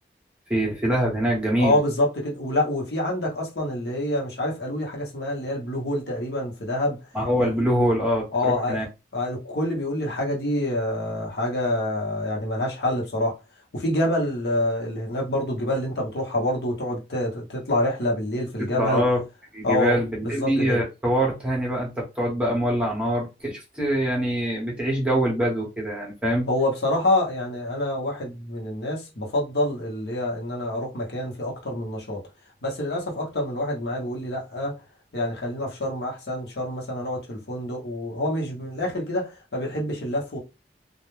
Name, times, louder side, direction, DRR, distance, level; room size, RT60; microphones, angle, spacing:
voice 1, 0.5-1.8 7.1-8.3 8.7-8.8 18.7-19.2 19.5-26.5, equal, 5° right, 0.8 m, -24 dB
voice 2, 1.6-7.0 7.4-7.6 8.3-8.8 9.1-13.4 13.7-19.0 19.6-20.8 26.5-32.2 32.6-34.7 35.1-40.4, left 1 dB, 75° left, 0.9 m, -27 dB
2.3 x 2.1 x 3.1 m
head